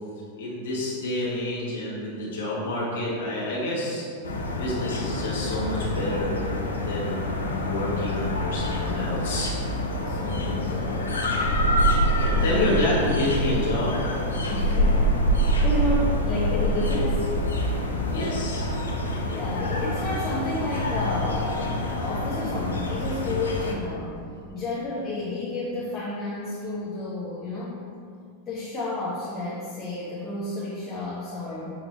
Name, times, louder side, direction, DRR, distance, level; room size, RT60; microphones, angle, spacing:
voice 1, 0.4-4.0 4.5-6.4 6.8-7.2 7.6-9.5 12.2-14.0 18.1-18.7, left 1 dB, 60° left, -6 dB, 1.3 m, -28 dB
sound 1, 4.2-23.7, equal, 75° left, 0.5 m, -26 dB
voice 2, 10.0-11.2 12.3-12.7 14.5-17.3 19.3-24.2 24.5-27.8 28.5-31.7, left 1 dB, 20° left, -6 dB, 0.7 m, -31 dB
6.5 x 2.7 x 2.9 m, 2.4 s
figure-of-eight pair, 90°, 0 cm